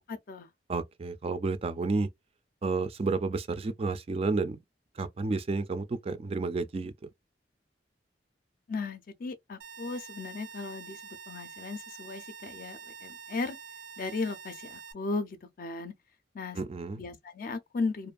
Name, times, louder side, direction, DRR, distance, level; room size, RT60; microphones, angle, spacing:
voice 1, 0.1-0.5 8.7-13.6 14.0-15.9 16.3-16.6 17.0-18.1, left 3 dB, 50° left, 0.5 m, -36 dB
voice 2, 0.7-2.1 2.6-4.6 5.0-6.9 16.5-17.0, right 3 dB, 35° right, 0.3 m, -31 dB
sound 1, 9.6-14.9, right 6 dB, 85° right, 0.6 m, -46 dB
2.5 x 2.4 x 2.3 m
head